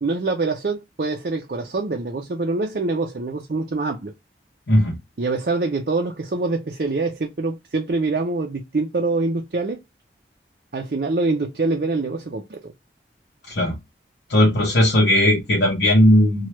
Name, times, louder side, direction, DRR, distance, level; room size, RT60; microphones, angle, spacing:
voice 1, 0.0-4.1 5.2-9.8 10.7-12.7, right 3 dB, 55° right, 0.5 m, -25 dB
voice 2, 14.3-16.5, left 1 dB, 75° left, 0.8 m, -17 dB
3.1 x 2.3 x 2.8 m
head